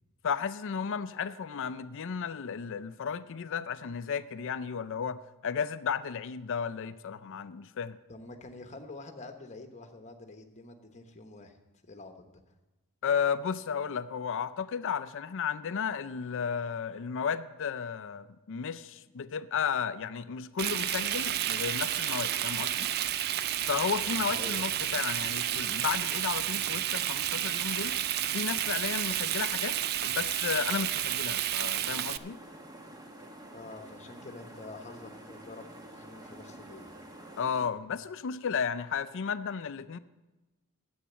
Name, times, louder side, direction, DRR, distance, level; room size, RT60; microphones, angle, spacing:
voice 1, 0.2-8.0 13.0-22.9 23.6-28.0 28.3-29.8 30.0-32.4 37.4-40.0, left 6 dB, 60° left, 14 dB, 0.4 m, -33 dB
voice 2, 8.1-11.6 11.9-12.3 24.3-24.7 33.5-37.0, left 3 dB, 30° left, 6 dB, 1.0 m, -47 dB
Frying (food), 20.6-32.2, right 12 dB, 45° right, 0.3 m, -31 dB
sound 1, 23.6-29.9, right 1 dB, 80° right, 2.4 m, -57 dB
sound 2, 31.7-37.7, right 1 dB, 15° right, 1.0 m, -48 dB
10.0 x 8.0 x 7.3 m, 1.1 s
head